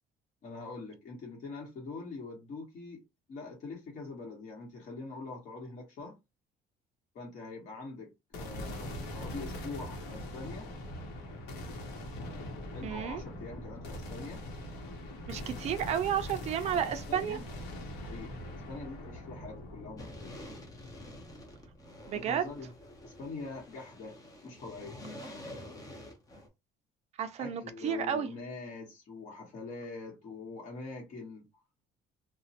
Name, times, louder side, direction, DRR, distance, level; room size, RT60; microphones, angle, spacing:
voice 1, 0.4-3.0 3.3-6.2 7.1-10.7 12.7-14.4 16.6-18.4 18.7-20.5 22.1-22.7 23.0-24.1 24.4-25.0 27.4-31.5, left 3 dB, 45° left, 1.0 m, -44 dB
sound 1, 8.3-22.6, left 1 dB, 85° left, 0.9 m, -42 dB
voice 2, 12.8-13.2 15.3-17.4 22.1-22.4 27.2-28.3, right 9 dB, 40° right, 0.4 m, -32 dB
sound 2, 20.0-26.5, left 1 dB, 20° left, 0.6 m, -48 dB
2.9 x 2.1 x 2.7 m
cardioid pair, 175°, 17 cm